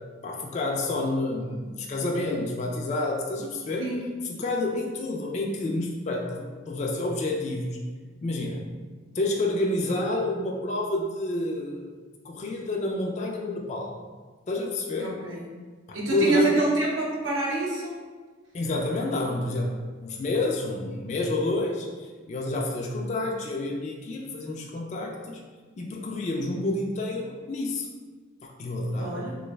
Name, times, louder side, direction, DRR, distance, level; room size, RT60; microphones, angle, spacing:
voice 1, 0.2-3.9 4.4-7.8 8.2-8.6 9.1-11.9 12.2-14.0 14.5-15.1 16.1-16.5 18.5-25.4 25.8-27.9 28.4-29.3, left 2 dB, 35° left, -1 dB, 0.3 m, -29 dB
voice 2, 15.0-15.4 15.9-18.0 29.0-29.4, right 3 dB, 80° right, -5 dB, 0.9 m, -26 dB
3.1 x 2.4 x 3.3 m, 1.4 s
head